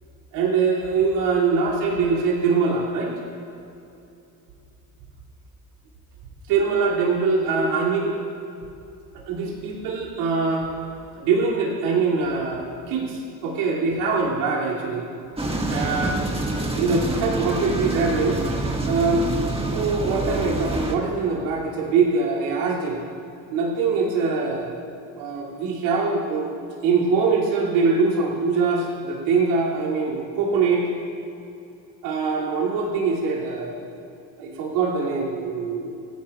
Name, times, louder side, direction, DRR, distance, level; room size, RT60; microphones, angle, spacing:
voice 1, 0.3-3.1 6.5-8.2 9.1-10.7 11.2-15.1 15.7-16.3 16.7-18.4 18.9-19.3 19.7-23.0 23.5-24.7 25.2-26.5 26.8-30.9 32.0-33.8 34.4-36.1, right 4 dB, 80° right, -4 dB, 2.8 m, -23 dB
sound 1, 15.4-21.0, right 2 dB, 15° right, 1.7 m, -26 dB
18.0 x 14.5 x 2.4 m, 2.7 s
supercardioid pair, 65°, 41 cm